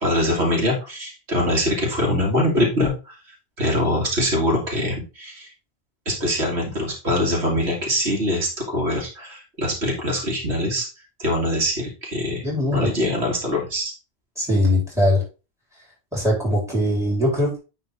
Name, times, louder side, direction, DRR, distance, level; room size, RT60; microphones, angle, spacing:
voice 1, 0.0-3.2 3.6-5.5 6.1-10.9 11.2-12.4 12.7-13.9, left 1 dB, 90° right, -1 dB, 2.6 m, -23 dB
voice 2, 12.4-12.9 14.4-15.2 16.1-17.6, left 1 dB, 5° right, -4 dB, 4.5 m, -21 dB
9.8 x 4.0 x 3.8 m, 0.31 s
omnidirectional pair, 1.1 m